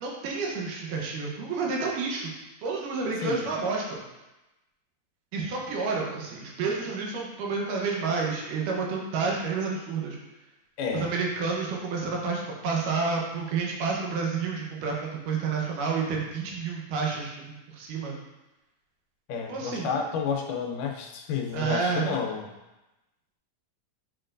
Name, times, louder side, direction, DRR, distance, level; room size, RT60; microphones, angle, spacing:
voice 1, 0.0-2.3 2.6-4.0 5.3-10.2 10.9-18.2 19.5-19.9 21.5-22.1, right 4 dB, 85° right, -1 dB, 2.6 m, -30 dB
voice 2, 3.2-3.5 10.8-11.1 19.3-22.5, left 6 dB, 85° left, 1 dB, 2.3 m, -30 dB
8.4 x 4.4 x 2.5 m, 1.0 s
omnidirectional pair, 3.7 m